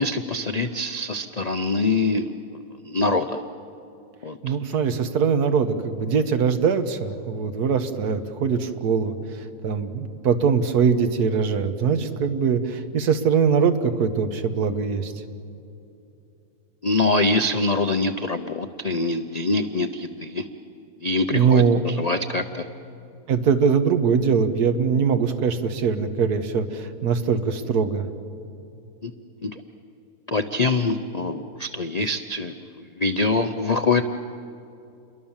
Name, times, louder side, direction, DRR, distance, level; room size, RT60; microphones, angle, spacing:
voice 1, 0.0-2.3 2.9-3.4 4.2-4.3 16.8-20.4 21.0-22.6 29.0-29.1 29.4-29.5 30.3-32.5 33.0-34.0, left 3 dB, 40° left, 8 dB, 0.6 m, -24 dB
voice 2, 4.4-9.1 9.6-15.1 21.3-21.8 23.3-28.1, right 6 dB, 75° right, 8 dB, 1.7 m, -22 dB
29.0 x 22.5 x 7.3 m, 2.7 s
omnidirectional pair, 1.7 m